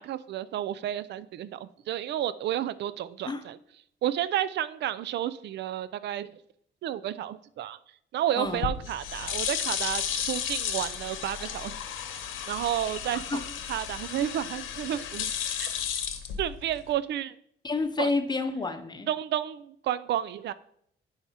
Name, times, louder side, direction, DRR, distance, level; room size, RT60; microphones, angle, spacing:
voice 1, 0.0-3.6 4.0-6.3 6.8-7.8 8.1-11.8 12.5-13.4 13.7-15.3 15.6-15.7 16.4-17.3 18.0-18.1 19.1-20.5, right 11 dB, 60° right, 16 dB, 0.4 m, -31 dB
voice 2, 8.4-8.7 13.1-13.4 17.6-19.1, left 3 dB, 20° left, 8 dB, 0.8 m, -29 dB
sound 1, 8.5-16.9, left 8 dB, 85° left, 0.9 m, -33 dB
10.5 x 4.9 x 2.8 m, 0.68 s
cardioid pair, 90°, 20 cm